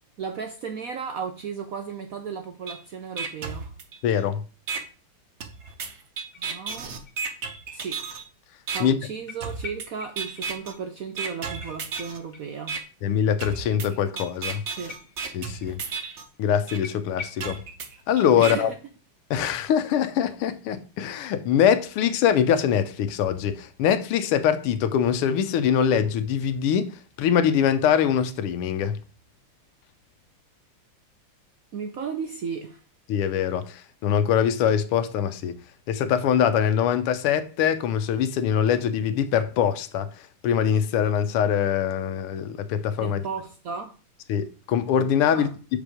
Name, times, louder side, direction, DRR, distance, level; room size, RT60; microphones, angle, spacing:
voice 1, 0.2-3.7 6.4-6.9 7.7-8.0 8.7-12.8 14.8-15.0 15.7-15.8 18.4-18.7 31.7-32.8 43.0-43.9 45.3-45.5, right 6 dB, 85° right, 0.7 m, -34 dB
sound 1, 2.7-2.8 3.2-4.2 4.7-4.8 5.4-8.2 8.7-8.8 9.4-9.9 10.2-10.7 11.2-12.2 12.7-12.8 13.4-16.2 16.7-16.8 17.4-18.5, right 5 dB, 50° right, 0.8 m, -33 dB
voice 2, 4.0-4.4 8.8-9.0 13.0-14.6 15.3-15.8 16.4-17.6 18.1-18.7 19.3-26.9 27.2-29.0 33.1-35.6 35.9-40.1 40.4-43.2 44.3-45.8, left 8 dB, 85° left, 1.7 m, -23 dB
sound 2, 6.3-7.5 7.8-7.9 9.3-10.5 10.7-10.8 11.1-11.2 11.6-13.1 14.5-15.7 16.0-16.1 16.3-16.4 16.8-17.5, left 5 dB, 60° left, 0.4 m, -44 dB
6.5 x 5.3 x 4.8 m
omnidirectional pair, 2.4 m